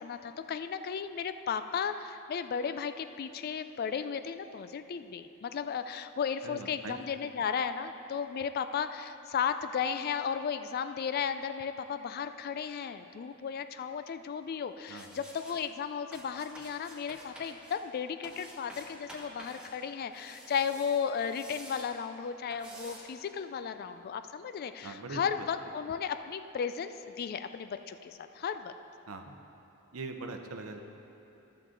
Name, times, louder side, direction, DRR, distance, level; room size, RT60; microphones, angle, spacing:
voice 1, 0.0-28.7, left 7 dB, 45° left, 10 dB, 0.3 m, -35 dB
voice 2, 6.4-7.0 14.9-15.2 24.8-25.2 29.1-29.4 29.9-30.8, right 3 dB, 80° right, 5 dB, 0.7 m, -41 dB
sound 1, 14.9-15.6 16.1-17.8 18.2-19.7 20.0-21.9 22.5-23.0, right 1 dB, 5° right, 1.2 m, -49 dB
13.5 x 6.6 x 3.8 m, 3.0 s
head